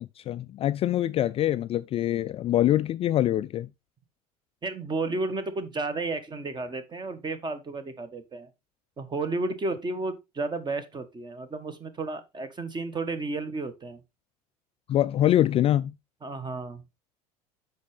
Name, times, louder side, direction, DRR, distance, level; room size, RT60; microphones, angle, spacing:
voice 1, 0.0-3.7 14.9-15.9, left 12 dB, 30° left, 0.4 m, -24 dB
voice 2, 4.6-8.5 9.0-14.0 16.2-16.8, right 3 dB, 25° right, 1.4 m, -32 dB
8.2 x 6.0 x 3.4 m
figure-of-eight pair, 70°, 19 cm